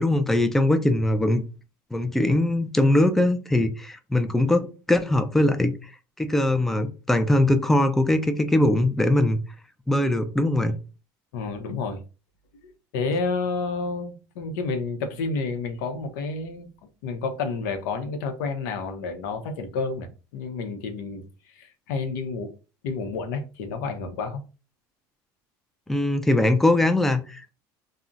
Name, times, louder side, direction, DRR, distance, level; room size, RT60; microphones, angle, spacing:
voice 1, 0.0-1.4 1.9-5.9 6.2-9.4 9.9-10.8 25.9-27.5, left 1 dB, 5° left, 0.3 m, -21 dB
voice 2, 11.3-12.0 12.6-16.7 17.0-20.1 20.3-22.5 22.8-24.4, left 4 dB, 85° left, 0.6 m, -30 dB
2.4 x 2.0 x 3.8 m
supercardioid pair, 115°, 10 cm